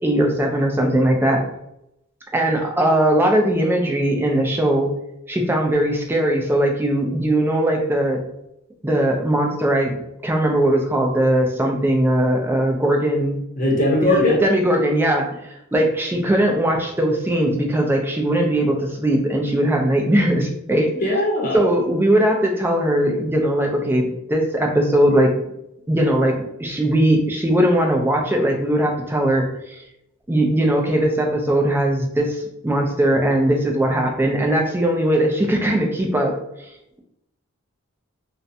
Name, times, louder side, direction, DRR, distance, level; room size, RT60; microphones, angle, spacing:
voice 1, 0.0-1.4 2.3-4.9 5.3-8.2 8.8-10.0 10.2-13.4 14.0-20.9 21.5-25.4 25.9-26.3 26.6-29.8 30.3-36.4, right 1 dB, 10° right, 1 dB, 0.3 m, -19 dB
voice 2, 13.6-14.5 21.0-21.6, left 1 dB, 40° left, -3 dB, 0.7 m, -19 dB
2.4 x 2.1 x 2.6 m, 0.81 s
head